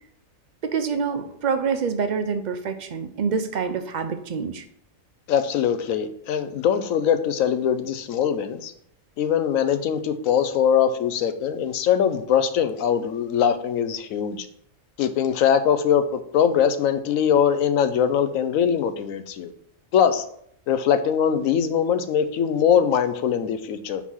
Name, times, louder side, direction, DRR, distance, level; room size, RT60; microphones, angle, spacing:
voice 1, 0.6-4.6, right 5 dB, 65° right, 8 dB, 0.4 m, -26 dB
voice 2, 5.3-8.7 9.2-14.5 15.0-19.5 19.9-20.2 20.7-24.0, left 8 dB, 90° left, 9 dB, 1.0 m, -22 dB
4.7 x 4.2 x 5.5 m, 0.69 s
omnidirectional pair, 1.4 m